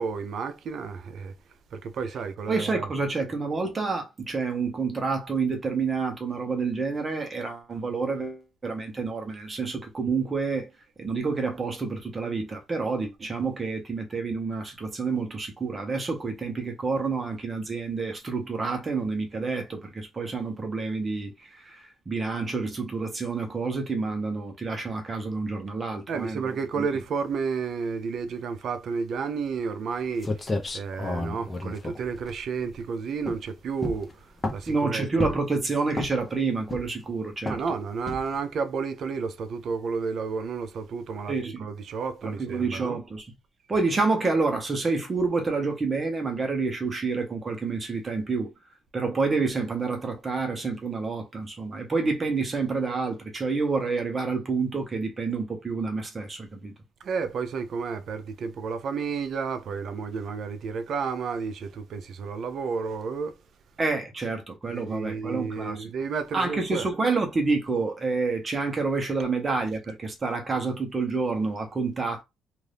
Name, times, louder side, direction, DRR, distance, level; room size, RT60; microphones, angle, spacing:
voice 1, 0.0-1.3 1.7-2.9 26.1-30.5 30.7-35.3 37.5-43.0 57.0-63.4 64.7-66.9, right 5 dB, 60° right, 0.6 m, -31 dB
voice 2, 2.5-10.7 11.0-26.8 34.7-37.6 41.3-41.7 42.2-43.3 43.7-48.5 48.9-56.7 63.8-65.9 66.3-72.2, right 4 dB, 30° right, 1.0 m, -28 dB
sound 1, 29.9-30.0 30.2-32.8 33.2-33.5 33.8-34.8 35.2-35.6 35.9-36.3 36.7-37.1 37.5-37.7 38.1-38.4, left 2 dB, 25° left, 0.8 m, -32 dB
2.6 x 2.6 x 3.4 m
cardioid pair, 90°, 0 cm